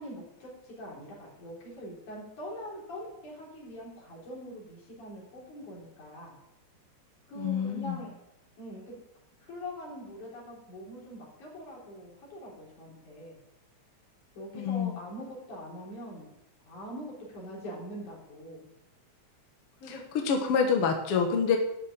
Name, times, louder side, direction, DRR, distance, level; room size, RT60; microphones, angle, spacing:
voice 1, 0.0-6.4 7.3-8.1 8.6-8.9 9.4-13.4 14.4-16.3 16.7-18.7 19.8-20.0, equal, 80° left, -4 dB, 5.3 m, -43 dB
voice 2, 7.4-8.0 14.5-15.0 19.9-21.6, left 6 dB, 55° left, 3 dB, 1.9 m, -27 dB
12.0 x 6.4 x 7.3 m, 0.84 s
omnidirectional pair, 3.4 m